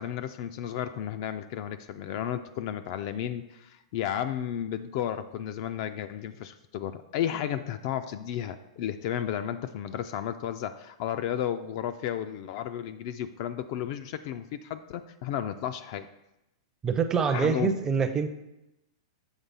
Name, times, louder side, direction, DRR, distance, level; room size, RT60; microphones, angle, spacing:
voice 1, 0.0-16.1 17.3-17.8, left 10 dB, 50° left, 10 dB, 0.3 m, -33 dB
voice 2, 16.8-18.3, right 6 dB, 20° right, 9 dB, 0.5 m, -25 dB
7.3 x 3.3 x 5.4 m, 0.90 s
hypercardioid pair, 140°, 3 cm